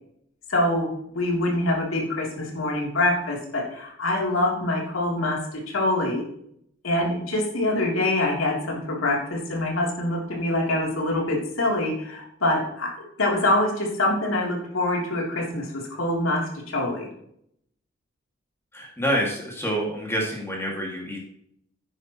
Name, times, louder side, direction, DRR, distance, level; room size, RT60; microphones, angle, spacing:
voice 1, 0.5-6.2 6.8-17.1, left 1 dB, 85° left, -1 dB, 3.2 m, -25 dB
voice 2, 18.7-21.2, equal, 10° left, -2 dB, 2.2 m, -27 dB
10.5 x 10.0 x 3.1 m, 0.72 s
head